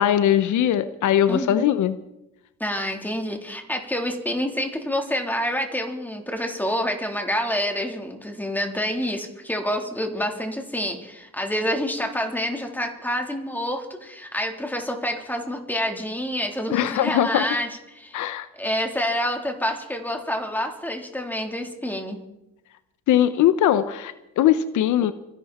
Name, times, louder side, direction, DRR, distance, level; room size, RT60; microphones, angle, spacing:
voice 1, 0.0-2.0 16.7-17.5 18.1-18.5 23.1-25.1, left 11 dB, 80° left, 13 dB, 0.8 m, -20 dB
voice 2, 1.3-1.7 2.6-18.3 18.6-22.2, equal, 5° left, 2 dB, 3.5 m, -28 dB
25.5 x 12.0 x 4.3 m, 0.89 s
cardioid pair, 90°, 30 cm